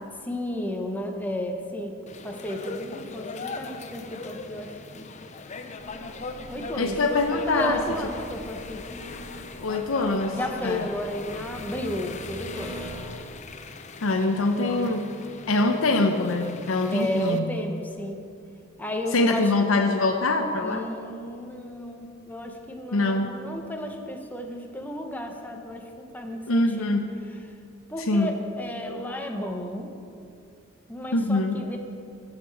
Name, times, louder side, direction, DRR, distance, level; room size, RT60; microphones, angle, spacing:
voice 1, 0.2-5.1 6.5-7.0 7.3-8.8 10.3-12.9 14.5-15.0 16.9-18.3 18.8-19.5 20.6-27.0 27.9-29.9 30.9-31.8, equal, 10° left, 3 dB, 0.9 m, -33 dB
sound 1, 2.1-17.4, left 3 dB, 35° left, 0.5 m, -40 dB
sound 2, 5.8-13.1, equal, 25° right, 1.5 m, -43 dB
voice 2, 6.7-7.8 9.6-10.9 14.0-15.1 15.5-17.5 19.1-20.8 22.9-23.3 26.5-27.1 28.1-28.3 31.1-31.6, left 2 dB, 85° left, 4 dB, 0.6 m, -24 dB
16.0 x 6.6 x 4.6 m, 2.5 s
head